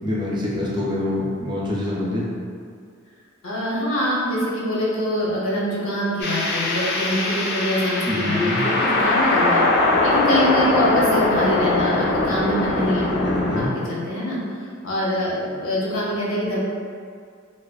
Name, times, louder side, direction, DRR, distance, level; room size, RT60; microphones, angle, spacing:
voice 1, 0.0-2.3 8.1-8.6 13.1-13.7, left 1 dB, 25° right, -6 dB, 0.4 m, -25 dB
voice 2, 3.4-13.3 13.5-16.6, left 1 dB, 85° left, -6 dB, 0.7 m, -24 dB
sound 1, 6.2-13.7, left 2 dB, 55° left, 0.4 m, -21 dB
2.4 x 2.3 x 2.3 m, 2.2 s
head